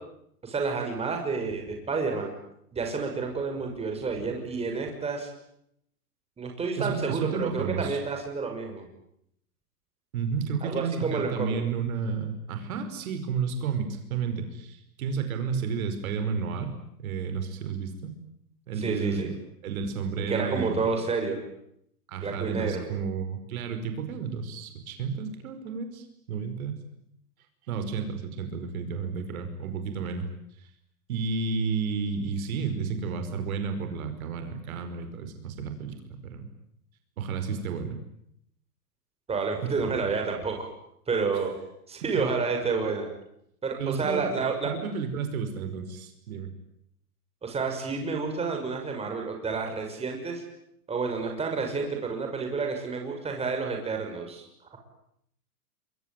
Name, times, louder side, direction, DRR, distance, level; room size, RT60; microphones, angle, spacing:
voice 1, 0.4-2.3 2.7-5.3 6.4-8.9 10.6-11.6 18.8-19.3 20.3-21.4 22.2-22.8 39.3-40.6 41.1-41.5 41.9-43.1 43.6-44.7 47.4-50.4 50.9-54.4, right 4 dB, 15° right, 3 dB, 6.2 m, -29 dB
voice 2, 6.8-8.0 10.1-16.7 17.0-18.1 18.7-19.4 19.6-20.8 22.1-26.8 27.7-30.3 30.6-30.7 31.1-36.5 37.2-38.0 39.6-39.9 42.1-42.3 43.8-46.5, right 5 dB, 65° right, 7 dB, 5.4 m, -32 dB
27.5 x 23.5 x 9.3 m, 0.74 s
hypercardioid pair, 140°, 46 cm